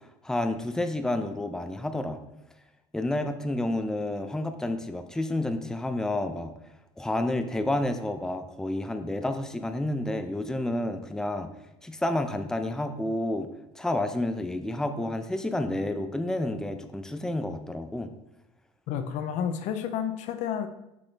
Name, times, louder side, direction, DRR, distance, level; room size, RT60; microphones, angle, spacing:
voice 1, 0.2-2.2 2.9-6.5 7.0-11.5 11.8-13.5 13.8-18.1, left 1 dB, 5° left, 8 dB, 0.6 m, -30 dB
voice 2, 18.9-20.7, left 8 dB, 55° left, 9 dB, 0.7 m, -30 dB
6.1 x 5.9 x 3.4 m, 0.88 s
supercardioid pair, 90°, 14 cm